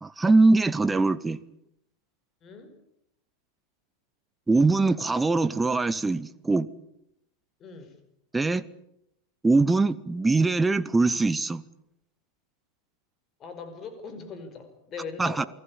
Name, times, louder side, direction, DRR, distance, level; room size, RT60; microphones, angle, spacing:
voice 1, 0.0-1.4 4.5-6.7 8.3-8.6 9.4-11.6 15.2-15.5, right 3 dB, 10° right, 15 dB, 0.9 m, -22 dB
voice 2, 2.4-2.7 4.5-4.8 7.6-7.9 13.4-15.5, left 5 dB, 30° left, 9 dB, 5.3 m, -41 dB
28.5 x 19.5 x 8.6 m, 0.79 s
figure-of-eight pair, 90°, 0 cm